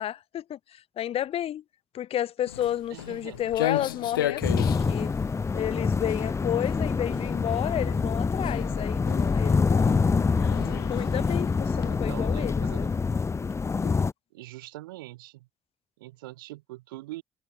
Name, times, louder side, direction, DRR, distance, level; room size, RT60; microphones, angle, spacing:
voice 1, 0.0-1.6 1.9-5.1 5.5-10.1 10.6-12.9 13.8-14.0, left 11 dB, 60° left, 1.5 m, -32 dB
Walk footsteps, 2.5-11.9, left 12 dB, 90° left, 0.7 m, -36 dB
voice 2, 2.9-3.4 11.8-12.9 14.3-15.5 16.0-17.2, right 18 dB, 85° right, 8.0 m, -43 dB
sound 1, 4.4-14.1, left 4 dB, 25° left, 0.4 m, -26 dB
hypercardioid pair, 45°, 11 cm